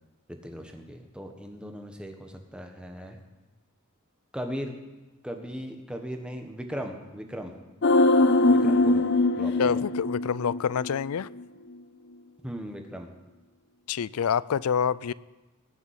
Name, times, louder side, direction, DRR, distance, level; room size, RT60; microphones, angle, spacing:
voice 1, 0.3-3.2 4.3-4.8 5.2-7.5 8.5-9.1 9.4-9.8 12.4-13.1, equal, 5° right, 4 dB, 1.4 m, -38 dB
sound 1, 7.8-11.1 11.4-11.5, left 2 dB, 50° left, 0.7 m, -22 dB
voice 2, 9.6-11.3 13.9-15.1, left 7 dB, 85° left, 20 dB, 0.4 m, -27 dB
19.5 x 7.2 x 8.3 m, 1.1 s
head